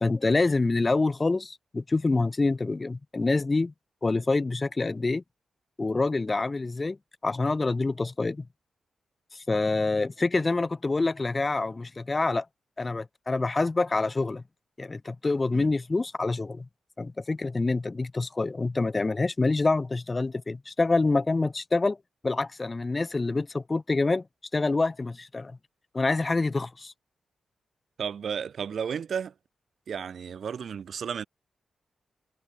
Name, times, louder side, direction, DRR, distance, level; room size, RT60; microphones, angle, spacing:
voice 1, 0.0-3.7 4.0-5.2 5.8-7.0 7.2-8.5 9.3-12.5 12.8-14.4 14.8-16.7 17.0-22.0 22.2-24.3 24.5-25.6 25.9-26.9, left 3 dB, 30° left, 1.0 m, -26 dB
voice 2, 28.0-29.3 29.9-31.2, right 7 dB, 70° right, 0.5 m, -33 dB
cardioid pair, 80°, 0 cm